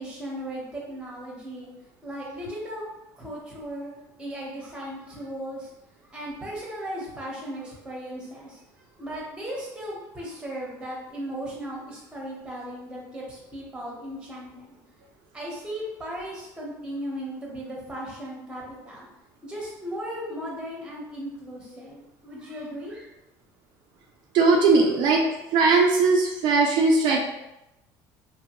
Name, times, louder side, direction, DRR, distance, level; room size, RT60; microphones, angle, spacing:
voice 1, 0.0-1.7 2.0-2.8 3.1-5.7 6.1-8.6 8.9-14.8 15.3-19.1 19.4-23.1, equal, 10° right, -3 dB, 0.9 m, -36 dB
voice 2, 24.3-25.2 25.5-27.2, right 3 dB, 60° right, 0 dB, 0.4 m, -19 dB
2.9 x 2.2 x 2.9 m, 0.92 s
cardioid pair, 130°, 8 cm